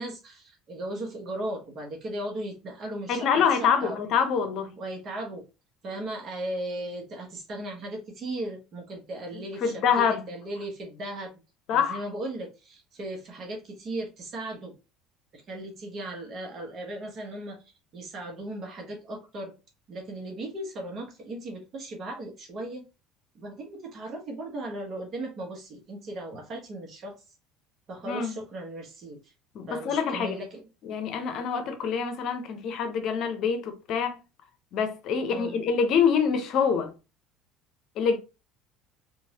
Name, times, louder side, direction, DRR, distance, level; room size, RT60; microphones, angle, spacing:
voice 1, 0.0-4.0 4.8-5.4 5.8-11.3 11.7-14.7 15.3-17.6 17.9-19.5 19.9-22.9 23.3-27.2 27.9-29.3 29.7-30.7 35.3-35.7, right 1 dB, 45° right, 1.0 m, -37 dB
voice 2, 3.1-4.7 9.6-10.2 11.7-12.0 28.1-28.3 29.5-30.4 30.8-34.2 34.7-36.9 38.0-38.2, left 6 dB, 60° left, 0.7 m, -25 dB
3.0 x 2.5 x 2.8 m
supercardioid pair, 95°, 0 cm